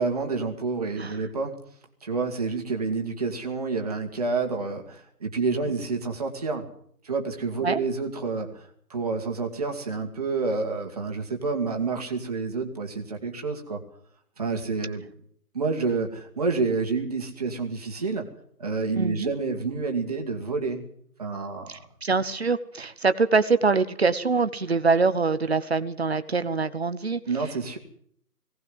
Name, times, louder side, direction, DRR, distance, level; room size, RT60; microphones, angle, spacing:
voice 1, 0.0-1.6 2.0-6.6 7.0-8.6 8.9-13.8 14.4-15.1 15.5-18.3 18.6-20.9 21.2-21.8 27.3-27.8, right 4 dB, 25° right, 3 dB, 2.0 m, -28 dB
voice 2, 19.0-19.3 21.7-27.2, right 4 dB, 40° right, 12 dB, 1.1 m, -24 dB
20.0 x 18.0 x 7.9 m, 0.65 s
figure-of-eight pair, 170°, 49 cm